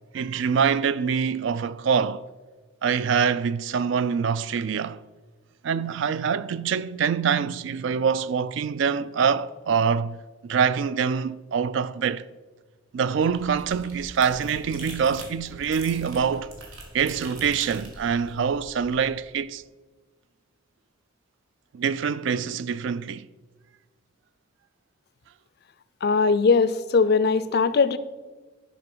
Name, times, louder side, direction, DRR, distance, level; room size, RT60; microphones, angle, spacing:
voice 1, 0.1-2.2 2.8-5.0 5.6-10.2 10.4-12.2 12.9-16.5 16.9-19.6 21.7-23.3, right 6 dB, 60° right, 0.3 m, -25 dB
sound 1, 13.0-19.1, right 1 dB, 85° right, 2.5 m, -43 dB
voice 2, 26.0-28.0, left 4 dB, 50° left, 0.4 m, -20 dB
11.0 x 5.1 x 6.0 m
head